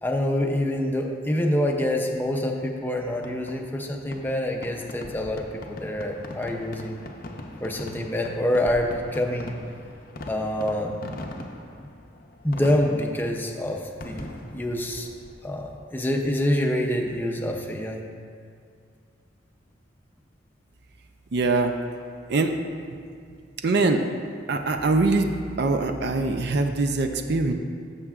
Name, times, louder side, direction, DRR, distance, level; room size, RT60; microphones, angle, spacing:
voice 1, 0.0-7.0 7.6-9.5 10.3-11.0 12.4-15.1 15.4-18.0, left 1 dB, 10° left, 1 dB, 0.6 m, -26 dB
Fireworks, 3.2-16.7, left 1 dB, 50° left, 0.6 m, -41 dB
voice 2, 21.3-21.7 22.3-22.5 23.6-24.0 24.5-25.3 25.6-27.5, right 3 dB, 60° right, 6 dB, 0.5 m, -22 dB
14.5 x 6.6 x 2.4 m, 2.2 s
head